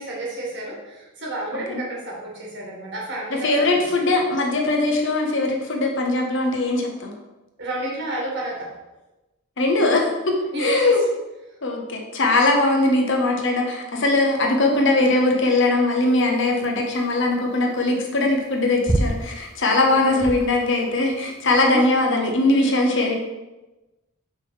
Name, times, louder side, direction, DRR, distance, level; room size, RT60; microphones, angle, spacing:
voice 1, 0.0-3.8 7.6-8.7 10.5-10.9 19.8-20.3 21.4-21.8, right 1 dB, 55° right, -3 dB, 1.9 m, -30 dB
voice 2, 3.4-7.1 9.6-11.0 11.6-23.2, left 2 dB, 60° left, 1 dB, 1.0 m, -20 dB
sound 1, 16.1-21.6, right 1 dB, 15° right, 0.4 m, -29 dB
5.0 x 3.8 x 5.4 m, 1.1 s
head